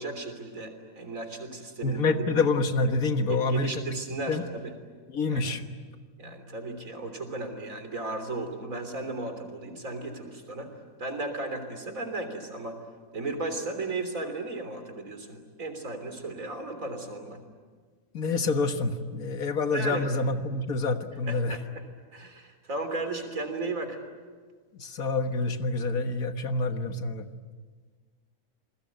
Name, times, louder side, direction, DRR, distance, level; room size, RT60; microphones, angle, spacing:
voice 1, 0.0-2.0 2.3-2.4 3.3-4.7 5.3-5.6 6.2-10.7 11.0-12.8 13.1-17.4 19.7-20.1 21.3-21.8 22.1-24.0, right 2 dB, 70° right, 7 dB, 3.9 m, -35 dB
voice 2, 1.8-3.7 4.3-4.4 5.1-5.6 18.1-21.6 24.8-27.3, left 3 dB, 90° left, 7 dB, 1.9 m, -27 dB
28.5 x 21.5 x 9.3 m, 1.5 s
omnidirectional pair, 1.5 m